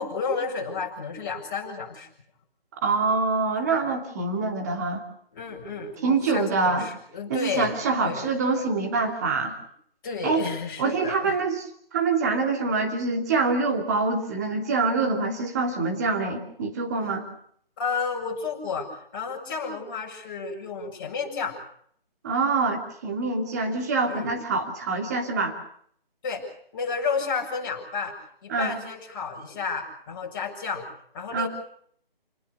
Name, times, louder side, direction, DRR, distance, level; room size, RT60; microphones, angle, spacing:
voice 1, 0.0-2.1 5.3-7.7 8.0-8.3 10.0-11.4 17.8-21.6 24.1-24.3 26.2-30.9 31.1-31.5, left 5 dB, 20° left, -2 dB, 7.3 m, -31 dB
voice 2, 2.8-5.0 6.0-6.9 7.3-9.6 10.2-10.4 10.8-11.7 11.9-17.3 22.2-25.6 28.5-28.8 31.3-31.5, right 4 dB, 15° right, 3 dB, 2.7 m, -25 dB
29.5 x 20.0 x 6.7 m, 0.65 s
figure-of-eight pair, 170°, 30 cm